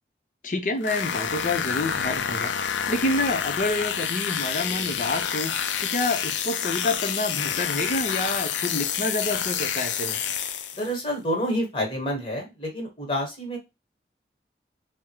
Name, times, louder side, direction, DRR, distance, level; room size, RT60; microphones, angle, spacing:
voice 1, 0.4-5.5 5.8-10.2, left 2 dB, 45° left, 0.6 m, -28 dB
sound 1, 0.8-11.0, left 8 dB, 90° left, 0.4 m, -28 dB
voice 2, 10.8-13.6, equal, 30° left, 1.2 m, -28 dB
3.5 x 2.1 x 2.9 m
head